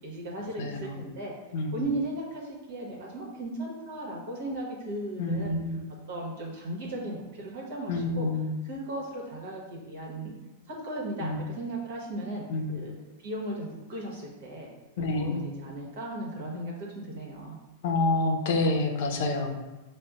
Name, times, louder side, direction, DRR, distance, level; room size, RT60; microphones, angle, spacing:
voice 1, 0.0-1.3 1.7-5.6 6.1-8.3 8.7-10.3 10.7-12.9 13.2-14.7 15.0-17.6, right 1 dB, 60° right, -2 dB, 1.2 m, -36 dB
voice 2, 0.6-1.0 1.5-1.8 5.2-5.8 7.9-8.6 11.2-11.4 12.5-12.9 15.0-15.5 17.8-19.6, left 2 dB, 60° left, 3 dB, 0.6 m, -28 dB
6.4 x 2.2 x 2.4 m, 1.1 s
hypercardioid pair, 100°, 0 cm